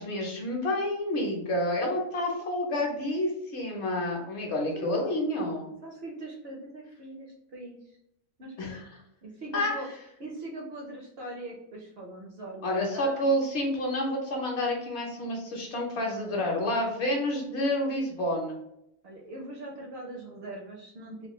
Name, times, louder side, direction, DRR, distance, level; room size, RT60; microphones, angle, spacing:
voice 1, 0.0-5.7 8.6-8.9 9.5-9.7 12.6-18.6, left 1 dB, 60° left, 0 dB, 1.0 m, -29 dB
voice 2, 4.7-5.1 5.8-8.0 8.4-8.9 9.2-9.9 10.2-13.3 16.0-16.5 19.0-21.3, right 1 dB, 60° right, -1 dB, 0.7 m, -42 dB
3.2 x 2.3 x 2.9 m, 0.79 s
omnidirectional pair, 1.4 m